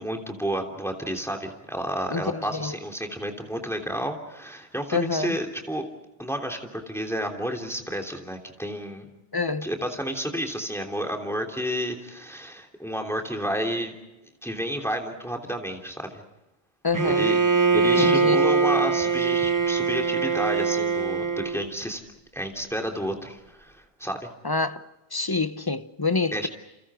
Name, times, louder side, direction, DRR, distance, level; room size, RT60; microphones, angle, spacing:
voice 1, 0.0-5.9 6.2-9.0 9.6-13.9 14.4-16.2 17.0-17.4 17.7-22.0 22.3-24.3 26.3-26.5, equal, ahead, 3.2 m, -31 dB
voice 2, 2.1-2.7 4.9-5.3 9.3-9.7 16.8-17.3 18.0-18.4 24.4-24.8 25.1-26.5, left 4 dB, 25° left, 0.9 m, -26 dB
Bowed string instrument, 16.9-21.7, right 5 dB, 20° right, 1.0 m, -22 dB
29.5 x 29.0 x 5.0 m
omnidirectional pair, 1.1 m